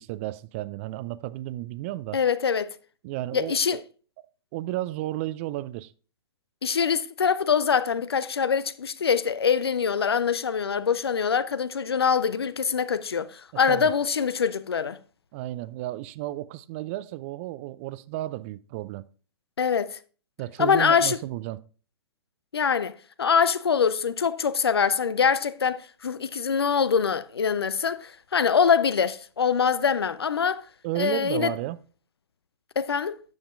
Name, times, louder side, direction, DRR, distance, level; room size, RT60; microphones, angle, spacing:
voice 1, 0.0-2.2 3.0-3.8 4.5-5.9 13.7-13.9 15.3-19.1 20.4-21.6 30.8-31.8, right 16 dB, 30° right, 0.4 m, -33 dB
voice 2, 2.1-2.7 3.3-3.8 6.6-15.0 19.6-20.0 20.6-21.2 22.5-22.9 23.2-30.6 30.9-31.5 32.8-33.2, left 6 dB, 70° left, 0.5 m, -24 dB
9.5 x 7.1 x 2.4 m
figure-of-eight pair, 110°, 14 cm